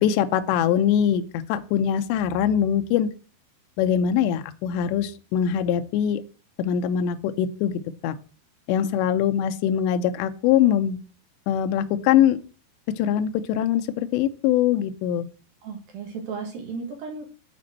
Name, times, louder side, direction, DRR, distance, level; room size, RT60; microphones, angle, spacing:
voice 1, 0.0-1.2 1.5-3.1 3.8-6.2 6.6-7.7 8.0-8.1 8.7-11.0 11.5-12.4 13.0-15.3, left 9 dB, 85° left, 9 dB, 2.9 m, -22 dB
voice 2, 15.6-17.3, right 5 dB, 65° right, 3 dB, 2.9 m, -35 dB
9.2 x 4.3 x 7.3 m, 0.37 s
omnidirectional pair, 5.1 m